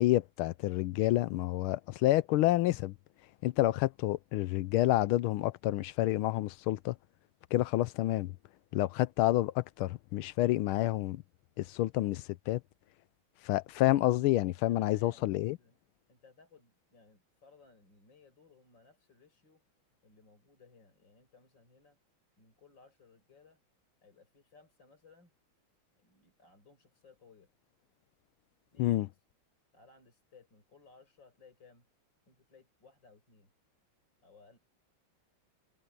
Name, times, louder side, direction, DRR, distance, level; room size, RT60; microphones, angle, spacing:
voice 1, 0.0-2.9 3.4-6.9 7.5-8.3 8.7-11.2 11.6-12.6 13.4-15.6 28.8-29.1, left 16 dB, 90° left, 1.5 m, -29 dB
voice 2, 14.7-15.8 16.1-19.6 20.0-22.0 22.4-23.6 24.0-25.3 26.0-27.5 28.7-28.9 29.7-31.9 32.3-33.5 34.2-34.6, left 4 dB, 60° left, 6.8 m, -61 dB
omnidirectional pair, 2.3 m